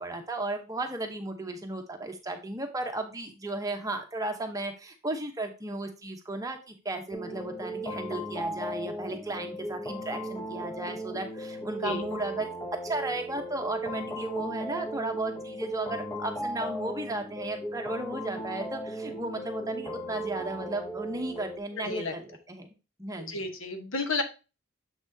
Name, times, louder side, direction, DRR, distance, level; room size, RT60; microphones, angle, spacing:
voice 1, 0.0-12.5 12.8-22.7 23.0-23.3, right 2 dB, 15° right, 5 dB, 0.8 m, -35 dB
sound 1, 7.1-21.6, right 1 dB, 15° left, 0.6 m, -37 dB
voice 2, 21.8-22.1 23.3-24.2, left 2 dB, 70° left, 6 dB, 1.1 m, -31 dB
7.1 x 6.0 x 2.7 m, 0.30 s
head